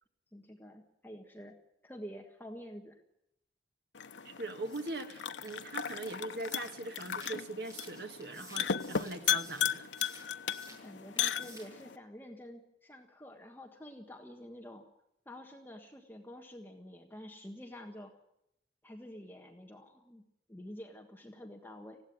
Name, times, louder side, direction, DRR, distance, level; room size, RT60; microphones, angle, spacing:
voice 1, 0.3-1.6 1.8-3.0 10.7-14.8 15.2-18.1 18.8-20.2 20.5-22.0, equal, 10° left, 3 dB, 1.5 m, -48 dB
sound 1, 3.9-12.0, left 8 dB, 85° left, 0.9 m, -36 dB
voice 2, 4.2-9.9, right 2 dB, 60° right, 6 dB, 1.8 m, -41 dB
sound 2, 4.6-10.9 11.2-11.8, right 1 dB, 20° right, 7.0 m, -55 dB
20.0 x 16.0 x 9.4 m, 0.81 s
head